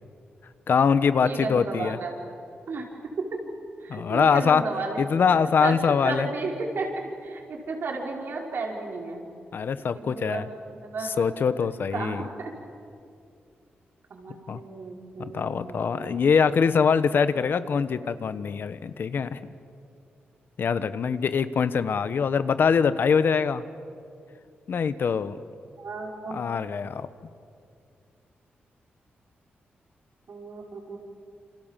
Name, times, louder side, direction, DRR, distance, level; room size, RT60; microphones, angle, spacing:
voice 1, 0.7-2.0 3.9-4.6 5.0-6.3 9.5-10.5 11.2-12.2 14.5-14.6 15.2-19.5 20.6-23.6 24.7-25.4 26.3-27.1, left 6 dB, 65° left, 13 dB, 1.2 m, -23 dB
voice 2, 1.2-2.1 2.7-2.9 3.2-3.3 3.8-5.0 5.6-6.9 7.2-9.2 9.9-11.2 11.6-12.5 14.1-16.2 25.8-26.5 30.3-31.0, right 3 dB, 65° right, 0 dB, 5.4 m, -33 dB
28.5 x 27.0 x 7.5 m, 2.4 s
cardioid pair, 85°, 4 cm